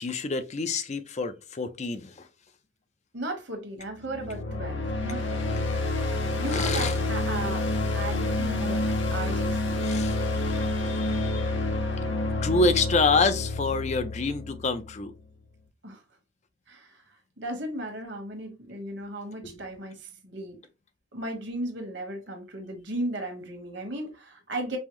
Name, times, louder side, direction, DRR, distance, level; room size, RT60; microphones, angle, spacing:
voice 1, 0.0-2.3 6.5-7.0 9.8-11.5 12.4-15.1 19.4-19.6, left 3 dB, 35° left, 0.5 m, -27 dB
voice 2, 3.1-5.6 6.4-9.9 15.8-16.0 16.7-20.6 21.1-24.8, right 1 dB, 65° right, 1.3 m, -36 dB
sound 1, 4.0-15.1, left 2 dB, 85° left, 0.9 m, -28 dB
5.4 x 2.0 x 3.0 m
head